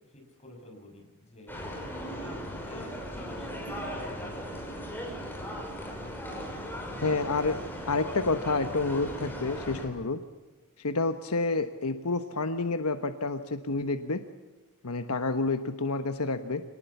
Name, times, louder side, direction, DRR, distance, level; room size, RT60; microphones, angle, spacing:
voice 1, 0.1-4.6, left 1 dB, 30° left, 2 dB, 6.9 m, -49 dB
sound 1, 1.5-9.9, equal, 10° left, 6.1 m, -38 dB
voice 2, 7.0-10.2 10.8-14.2 14.8-16.6, left 3 dB, 80° left, 8 dB, 1.2 m, -29 dB
26.5 x 19.5 x 7.2 m, 1.2 s
head